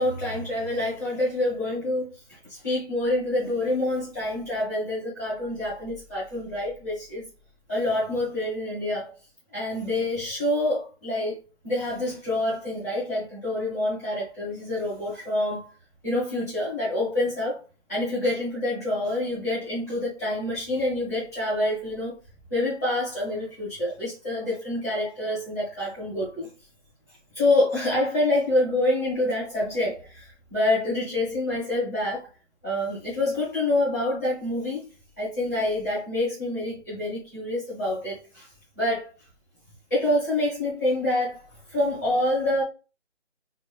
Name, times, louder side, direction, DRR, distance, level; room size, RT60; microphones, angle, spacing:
voice 1, 0.0-7.2 7.7-9.1 9.5-15.6 16.0-17.6 17.9-22.2 22.5-26.5 27.3-32.3 32.6-34.8 35.2-38.5 38.7-39.1 39.9-42.6, left 1 dB, 15° left, 1.1 m, -27 dB
2.6 x 2.5 x 3.4 m
hypercardioid pair, 175°, 36 cm